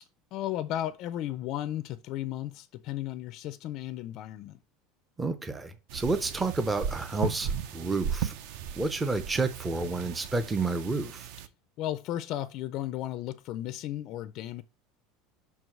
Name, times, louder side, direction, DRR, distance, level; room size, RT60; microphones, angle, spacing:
voice 1, 0.3-4.6 11.8-14.6, left 13 dB, 45° left, 0.4 m, -34 dB
voice 2, 5.2-8.3 8.8-11.3, right 3 dB, 10° right, 0.5 m, -30 dB
sound 1, 5.9-11.5, right 8 dB, 60° right, 0.6 m, -36 dB
5.7 x 4.6 x 6.2 m
cardioid pair, 165°, 0 cm